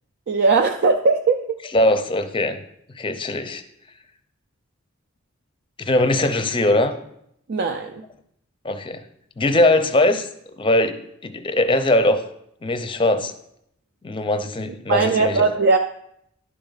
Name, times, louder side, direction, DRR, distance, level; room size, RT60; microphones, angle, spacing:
voice 1, 0.3-1.6 7.5-8.0 14.9-15.8, right 4 dB, 50° right, 5 dB, 0.5 m, -19 dB
voice 2, 1.7-2.6 2.9-3.6 5.8-6.9 8.6-9.0 9.4-10.3 10.6-11.0 11.2-12.2 12.6-13.3 14.0-15.5, left 1 dB, 25° left, 8 dB, 0.6 m, -20 dB
11.5 x 4.5 x 4.0 m, 0.74 s
head